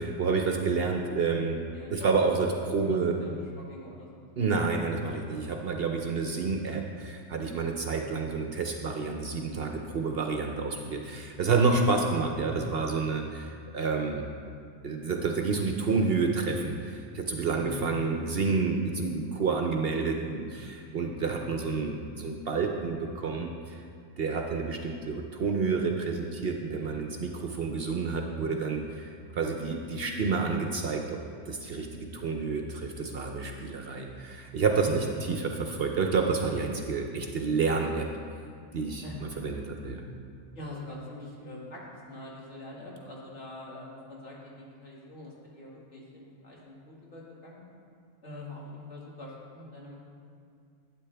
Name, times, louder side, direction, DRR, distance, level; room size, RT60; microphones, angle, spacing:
voice 1, 0.0-1.6 1.9-3.2 4.4-14.2 14.8-23.8 24.2-31.2 31.5-38.1 38.7-40.0, right 4 dB, 55° right, 3 dB, 0.8 m, -29 dB
voice 2, 2.6-4.5 5.3-5.4 7.9-8.2 17.6-17.9 20.9-21.3 34.8-34.9 39.0-39.2 40.5-47.7 48.2-49.9, left 1 dB, 60° left, -5 dB, 2.1 m, -44 dB
12.0 x 8.5 x 3.3 m, 2.3 s
omnidirectional pair, 1.3 m